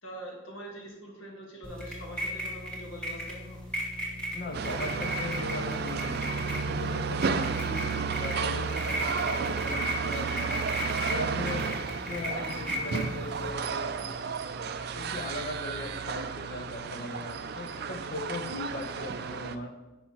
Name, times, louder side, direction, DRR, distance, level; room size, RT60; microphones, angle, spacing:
voice 1, 0.0-3.6, equal, 80° left, 0 dB, 1.5 m, -44 dB
sound 1, 1.6-13.5, equal, 5° left, 1.4 m, -36 dB
voice 2, 4.3-10.7 11.1-11.7 12.1-14.0 14.9-19.8, left 2 dB, 45° left, 4 dB, 0.8 m, -38 dB
sound 2, 4.5-19.6, right 5 dB, 50° right, 0.4 m, -32 dB
10.0 x 5.5 x 2.9 m, 1.0 s
head